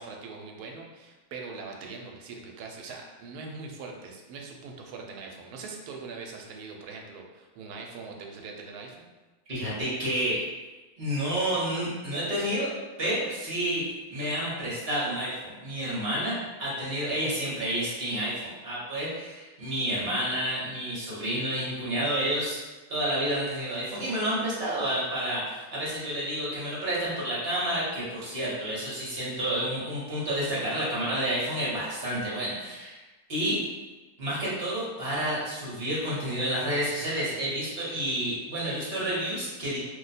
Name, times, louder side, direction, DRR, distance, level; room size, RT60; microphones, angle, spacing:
voice 1, 0.0-9.1, right 4 dB, 80° right, 1 dB, 1.1 m, -42 dB
voice 2, 9.5-10.4 11.0-12.7 13.0-13.8 14.1-22.6 22.9-32.9 33.3-33.6 34.2-39.8, right 1 dB, 45° right, -7 dB, 1.0 m, -30 dB
2.7 x 2.1 x 3.9 m, 1.2 s
omnidirectional pair, 1.6 m